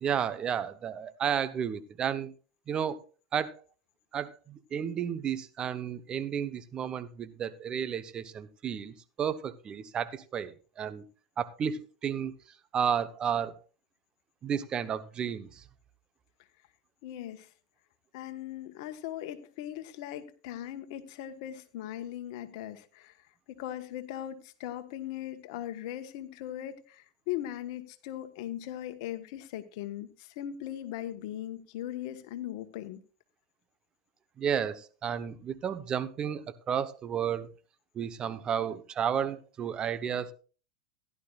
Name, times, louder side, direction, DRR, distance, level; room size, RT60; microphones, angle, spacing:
voice 1, 0.0-2.3 2.7-3.0 3.3-3.6 4.1-11.0 11.4-12.3 12.7-13.6 14.4-15.5 34.4-37.5 37.9-40.3, right 8 dB, 35° right, 1.0 m, -32 dB
voice 2, 17.0-17.5 18.1-23.2 23.6-33.0, left 12 dB, 65° left, 1.3 m, -39 dB
16.0 x 11.0 x 2.5 m
hypercardioid pair, 95°, 3 cm